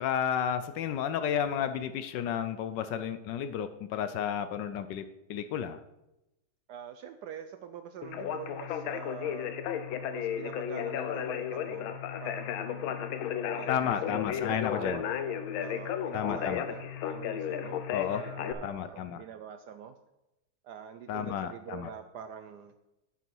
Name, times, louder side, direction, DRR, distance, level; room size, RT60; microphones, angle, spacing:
voice 1, 0.0-5.0 5.3-5.8 13.7-15.0 16.1-16.6 17.9-18.2 18.6-19.2 21.1-21.9, left 9 dB, 75° left, 11 dB, 1.1 m, -32 dB
voice 2, 6.7-9.5 10.1-13.0 13.5-15.0 15.6-17.8 18.1-20.0 20.6-22.7, right 8 dB, 75° right, 9 dB, 0.9 m, -45 dB
Conversation, 8.0-18.5, left 9 dB, 90° left, 1.6 m, -34 dB
10.5 x 6.9 x 4.5 m, 0.93 s
omnidirectional pair, 2.2 m